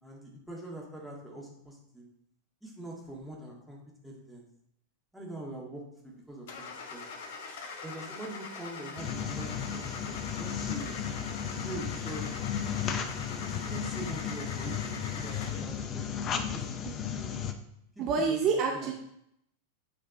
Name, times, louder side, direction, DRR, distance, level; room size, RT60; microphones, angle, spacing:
voice 1, 0.0-2.1 2.6-4.4 5.1-7.2 7.8-11.0 11.6-12.3 13.4-17.3 18.0-18.4 18.7-18.9, right 2 dB, ahead, -3 dB, 1.8 m, -44 dB
Car / Engine starting, 6.5-15.7, left 4 dB, 55° left, 0.9 m, -43 dB
sound 1, 9.0-17.5, left 8 dB, 30° left, 0.6 m, -34 dB
voice 2, 18.0-18.9, right 5 dB, 35° right, 1 dB, 0.7 m, -27 dB
7.6 x 4.2 x 4.0 m, 0.76 s
figure-of-eight pair, 90°, 0 cm